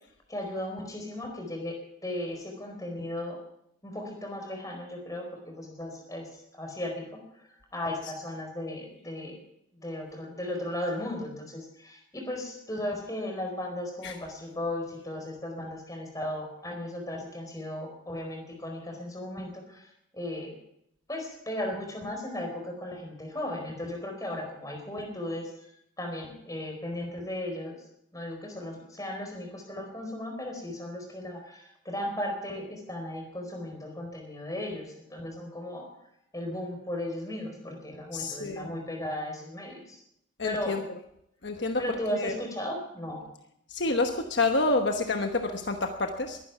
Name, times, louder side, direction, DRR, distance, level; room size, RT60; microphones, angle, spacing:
voice 1, 0.3-3.4 3.8-9.4 9.7-20.6 21.1-25.5 26.0-27.8 28.1-35.9 36.3-40.0 40.4-40.8 41.8-43.3, left 1 dB, 20° left, 2 dB, 4.3 m, -36 dB
voice 2, 38.1-38.7 40.4-40.8 41.4-41.8 42.1-42.3 43.7-46.4, left 3 dB, 65° left, 5 dB, 1.1 m, -28 dB
22.0 x 10.0 x 6.0 m, 0.78 s
head